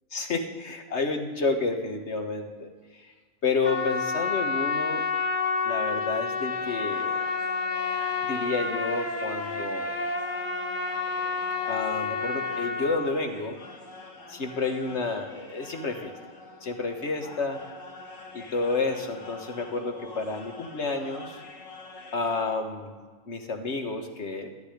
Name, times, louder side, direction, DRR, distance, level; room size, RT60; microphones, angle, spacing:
voice 1, 0.1-2.7 3.4-5.0 5.6-7.3 8.3-10.0 11.7-13.6 14.3-16.1 16.6-17.6 18.3-21.4 22.1-22.9 23.3-24.5, left 3 dB, 60° left, 5 dB, 1.6 m, -30 dB
Trumpet, 3.6-13.1, left 4 dB, 40° left, 1.1 m, -29 dB
sound 1, 6.5-22.5, left 3 dB, 75° left, 1.8 m, -46 dB
13.5 x 7.0 x 10.0 m, 1.5 s
omnidirectional pair, 1.4 m